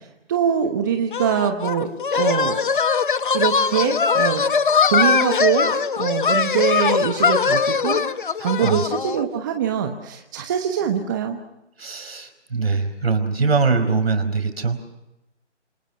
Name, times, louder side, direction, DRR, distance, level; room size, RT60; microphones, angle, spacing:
voice 1, 0.3-1.9 2.2-2.6 3.3-4.4 4.8-5.7 6.0-11.4, right 8 dB, 15° right, 5 dB, 1.1 m, -23 dB
sound 1, 1.1-9.2, left 5 dB, 45° left, 1.1 m, -21 dB
voice 2, 11.8-14.9, right 4 dB, 60° right, 9 dB, 4.9 m, -22 dB
28.0 x 27.0 x 6.1 m, 0.91 s
figure-of-eight pair, 150°, 35 cm